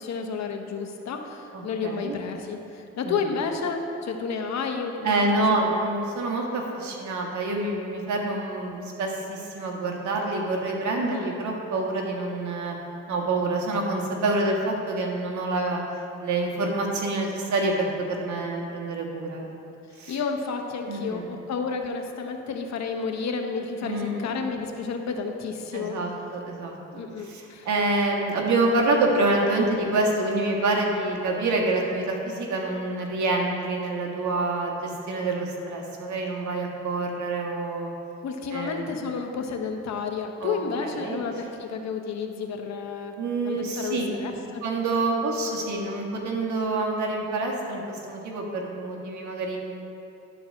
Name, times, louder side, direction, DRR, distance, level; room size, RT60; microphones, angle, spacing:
voice 1, 0.0-5.1 5.6-5.8 11.0-11.4 20.1-26.0 26.9-27.7 38.2-43.1 43.4-44.6, left 5 dB, 60° left, 4 dB, 1.0 m, -31 dB
voice 2, 1.5-2.1 5.0-12.7 13.1-15.8 16.2-19.5 20.0-20.2 20.9-21.2 23.8-24.3 25.7-26.8 27.2-37.9 38.5-38.8 40.4-40.6 40.8-41.2 43.1-44.1 44.6-49.6, right 2 dB, 70° right, 0 dB, 1.6 m, -27 dB
11.0 x 4.7 x 6.4 m, 2.7 s
cardioid pair, 90°, 30 cm